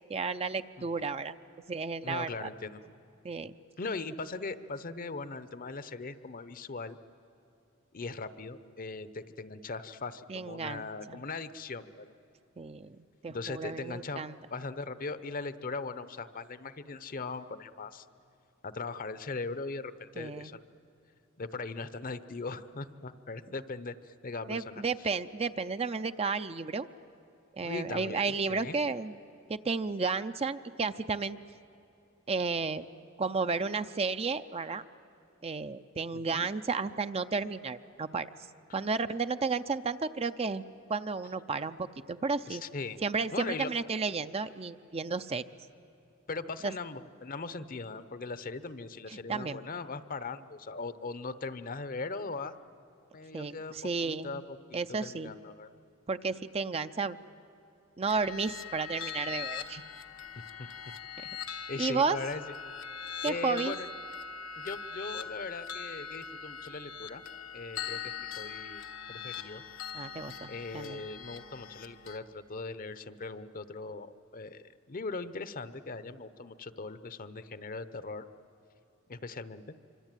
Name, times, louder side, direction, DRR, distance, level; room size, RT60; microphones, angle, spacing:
voice 1, 0.1-1.4 1.7-2.5 3.2-3.5 10.3-10.9 12.6-14.3 20.2-20.5 24.5-26.9 27.5-29.2 29.5-31.4 32.3-32.9 33.2-34.8 35.4-38.3 38.7-40.6 40.9-41.8 42.1-42.6 43.0-45.4 46.6-46.7 49.1-49.6 53.3-54.4 54.7-55.3 56.1-57.2 58.0-59.8 61.2-61.3 61.8-62.2 63.2-63.8 69.9-71.0, right 4 dB, 30° right, 11 dB, 0.6 m, -32 dB
voice 2, 2.0-2.8 3.8-7.0 7.9-12.1 13.3-14.2 14.5-18.0 18.6-20.7 21.4-25.1 27.6-28.8 36.1-36.5 42.5-43.0 43.3-43.7 46.3-52.5 53.1-53.8 54.0-55.7 60.6-60.7 61.7-62.4 63.2-63.9 64.6-67.2 67.5-68.8 69.1-69.6 70.5-78.3 79.1-79.6, left 3 dB, 45° left, 13 dB, 0.8 m, -39 dB
sound 1, 58.1-72.2, left 7 dB, 80° left, 1.3 m, -41 dB
25.5 x 25.0 x 9.1 m, 2.8 s
head